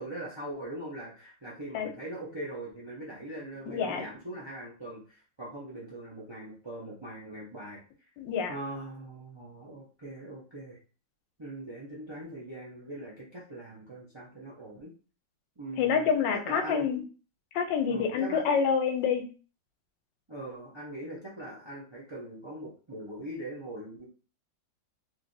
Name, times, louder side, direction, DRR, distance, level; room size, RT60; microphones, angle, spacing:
voice 1, 0.0-7.8 8.5-10.8 11.4-14.9 15.6-16.9 17.9-18.4 20.3-24.1, right 1 dB, 45° right, -5 dB, 0.3 m, -41 dB
voice 2, 3.7-4.0 8.2-8.5 15.8-17.0 17.5-19.3, left 6 dB, 90° left, 6 dB, 1.3 m, -27 dB
3.2 x 2.7 x 2.6 m, 0.37 s
omnidirectional pair, 1.9 m